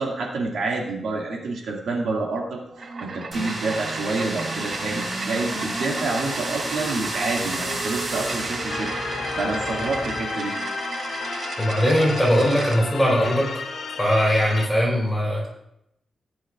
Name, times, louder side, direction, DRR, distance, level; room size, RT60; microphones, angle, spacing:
voice 1, 0.0-8.9 9.4-10.5, right 3 dB, 85° right, -1 dB, 2.1 m, -28 dB
sound 1, 2.7-12.8, right 3 dB, 50° right, 1.0 m, -34 dB
sound 2, 3.3-10.2, right 1 dB, 30° right, 3.9 m, -31 dB
sound 3, 8.7-14.7, left 5 dB, 65° left, 0.9 m, -33 dB
voice 2, 11.6-13.5 14.0-15.5, equal, ahead, -5 dB, 4.0 m, -20 dB
16.0 x 10.0 x 2.4 m, 0.79 s
wide cardioid pair, 160°, 0 cm